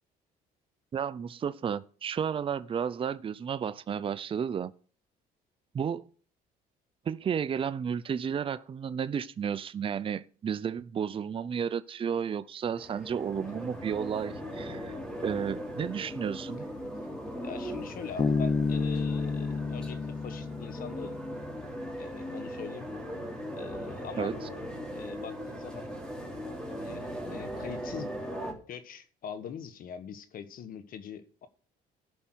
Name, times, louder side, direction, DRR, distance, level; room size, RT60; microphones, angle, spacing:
voice 1, 0.9-4.7 5.7-6.1 7.1-16.7 24.2-24.4, right 7 dB, 30° right, 0.6 m, -32 dB
sound 1, 12.7-28.5, equal, 5° left, 3.3 m, -39 dB
voice 2, 17.4-21.2 22.0-22.9 23.5-24.3 24.9-25.9 26.8-28.1 28.7-31.5, left 7 dB, 55° left, 1.3 m, -42 dB
Bass guitar, 18.2-21.6, left 4 dB, 25° left, 0.8 m, -30 dB
14.0 x 5.6 x 6.2 m
cardioid pair, 110°, 17 cm